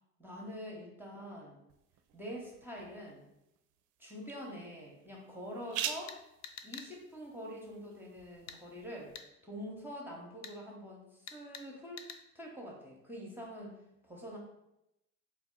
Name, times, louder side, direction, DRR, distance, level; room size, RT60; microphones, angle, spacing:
voice 1, 0.2-1.6 2.1-3.3 4.0-6.2 6.6-9.1 9.4-12.1 12.3-14.4, equal, 5° right, -3 dB, 0.8 m, -45 dB
sound 1, 1.7-9.2, right 9 dB, 50° right, 0.4 m, -46 dB
sound 2, 6.1-6.9 8.5-8.6 9.1-9.3 10.4-10.5 11.3-11.7 12.0-12.2, left 7 dB, 40° left, 0.4 m, -46 dB
3.4 x 2.4 x 3.6 m, 0.87 s
hypercardioid pair, 65°, 42 cm